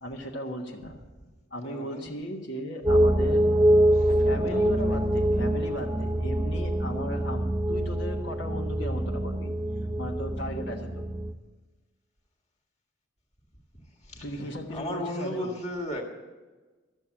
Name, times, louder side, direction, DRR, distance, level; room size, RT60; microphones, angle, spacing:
voice 1, 0.0-1.0 1.5-3.5 4.1-9.5 10.0-11.1 14.2-15.5, equal, 65° left, -1 dB, 1.3 m, -36 dB
voice 2, 1.6-2.1 3.9-4.8 14.0-16.0, left 1 dB, 35° left, 2 dB, 1.8 m, -36 dB
sound 1, 2.9-11.3, right 1 dB, 15° right, 0.5 m, -25 dB
13.5 x 7.4 x 8.6 m, 1.3 s
head